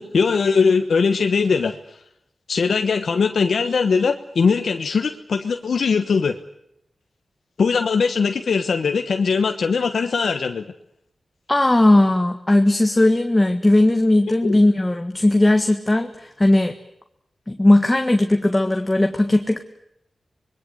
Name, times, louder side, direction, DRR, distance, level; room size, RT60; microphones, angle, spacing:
voice 1, 0.0-1.8 2.5-6.4 7.6-10.6 14.4-14.6, left 5 dB, 80° left, 6 dB, 1.3 m, -20 dB
voice 2, 11.5-16.7 17.5-19.6, left 1 dB, 20° left, 5 dB, 1.7 m, -17 dB
25.5 x 21.5 x 8.1 m, 0.77 s
wide cardioid pair, 70°, 0 cm